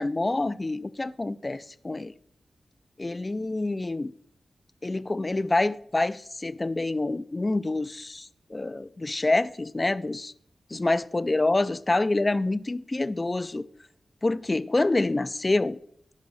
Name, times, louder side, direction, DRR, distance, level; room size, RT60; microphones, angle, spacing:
voice 1, 0.0-2.1 3.0-4.1 4.8-10.3 10.7-13.6 14.2-15.8, left 2 dB, 20° left, 0.3 m, -27 dB
16.5 x 5.7 x 4.0 m
wide cardioid pair, 175°, 0 cm